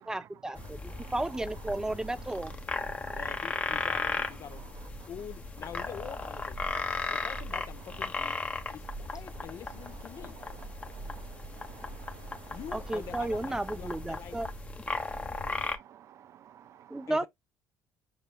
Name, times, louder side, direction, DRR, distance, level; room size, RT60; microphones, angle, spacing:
voice 1, 0.0-2.5 12.7-14.5 16.9-17.3, right 2 dB, 10° right, 0.6 m, -33 dB
sound 1, 0.6-15.8, left 3 dB, 20° left, 1.0 m, -36 dB
voice 2, 3.1-4.8 5.1-6.6 7.1-10.4 12.5-14.4 17.1-17.3, left 9 dB, 50° left, 0.8 m, -45 dB
sound 2, 9.4-14.4, right 8 dB, 80° right, 1.6 m, -56 dB
voice 3, 15.4-17.1, right 10 dB, 50° right, 0.3 m, -54 dB
7.4 x 3.2 x 2.2 m
cardioid pair, 120°, 6 cm